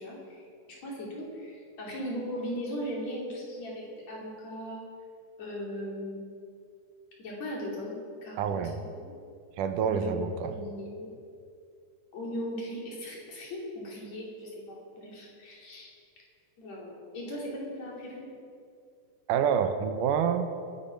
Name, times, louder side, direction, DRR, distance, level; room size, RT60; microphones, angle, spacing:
voice 1, 0.0-4.8 5.4-6.2 7.2-8.0 8.2-9.1 9.8-11.1 12.1-15.9 16.6-18.4, equal, 55° left, -3 dB, 4.2 m, -38 dB
voice 2, 8.4-8.8 9.6-10.5 19.3-20.5, right 7 dB, 80° right, 8 dB, 2.4 m, -27 dB
20.5 x 11.5 x 4.6 m, 2.3 s
omnidirectional pair, 3.7 m